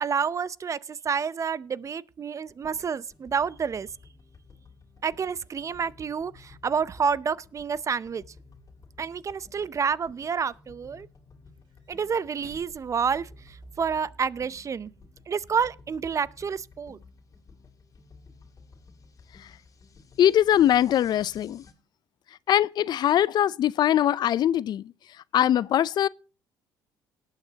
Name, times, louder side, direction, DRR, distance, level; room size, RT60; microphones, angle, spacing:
voice 1, 0.0-3.9 5.0-8.2 9.0-11.1 11.9-13.3 13.8-14.9 15.3-17.0, right 6 dB, 40° right, 0.6 m, -29 dB
sound 1, 2.4-21.7, left 4 dB, 40° left, 2.8 m, -54 dB
sound 2, 8.7-8.8 9.6-10.6 11.5-13.8 14.1-14.2 15.8-15.9, right 5 dB, 65° right, 4.4 m, -56 dB
voice 2, 20.2-21.6 22.5-24.9 25.3-26.1, left 11 dB, 55° left, 0.5 m, -22 dB
19.0 x 9.0 x 2.8 m
supercardioid pair, 65°, 8 cm